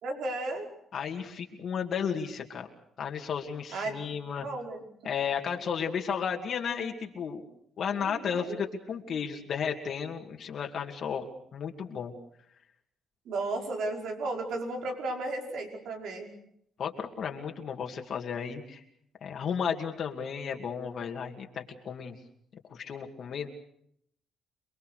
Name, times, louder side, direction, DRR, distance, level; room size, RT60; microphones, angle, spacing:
voice 1, 0.0-0.7 3.7-4.8 8.0-8.6 13.3-16.3, right 2 dB, 75° right, 2 dB, 5.4 m, -34 dB
voice 2, 0.9-2.7 3.0-4.5 5.0-7.4 7.8-11.2 11.5-12.1 16.8-18.8 19.2-22.2 22.7-23.5, left 7 dB, 60° left, 2 dB, 2.5 m, -33 dB
28.0 x 21.5 x 6.6 m, 0.71 s
cardioid pair, 90°, 0 cm